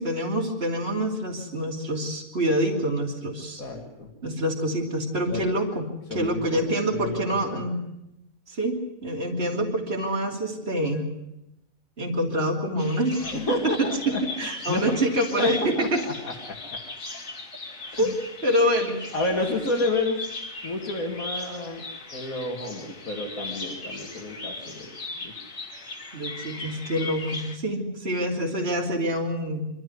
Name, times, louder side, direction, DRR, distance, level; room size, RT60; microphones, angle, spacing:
voice 1, 0.0-3.6 4.2-7.8 8.5-11.1 12.0-13.2 13.6-16.0 18.0-18.1 18.4-19.0 26.1-29.6, equal, 45° right, -1 dB, 3.3 m, -26 dB
voice 2, 3.6-4.1 5.3-5.4 6.1-6.6 6.9-7.7 13.2-14.3 14.7-14.9 15.4-15.5 15.8-16.8 17.9-18.1 19.1-20.2 20.6-21.9 22.1-24.9 25.2-25.3, left 2 dB, 85° left, -1 dB, 2.8 m, -30 dB
Bird vocalization bird call bird song, 12.8-27.6, left 3 dB, 65° left, 2.7 m, -38 dB
25.5 x 13.5 x 9.8 m, 0.88 s
omnidirectional pair, 1.4 m